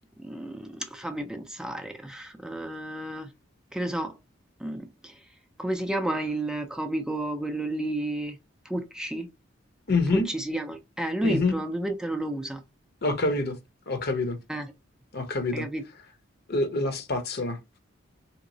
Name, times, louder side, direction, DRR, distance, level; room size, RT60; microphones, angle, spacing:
voice 1, 0.2-3.3 3.7-4.2 4.6-5.2 5.6-8.4 8.7-9.3 10.1-12.6 14.5-14.7 15.5-15.8, right 1 dB, 5° right, 0.4 m, -31 dB
voice 2, 9.9-10.3 11.2-11.6 13.0-13.6 13.9-14.4 15.1-15.7 16.5-17.6, left 3 dB, 55° left, 0.7 m, -26 dB
3.7 x 2.9 x 2.6 m
head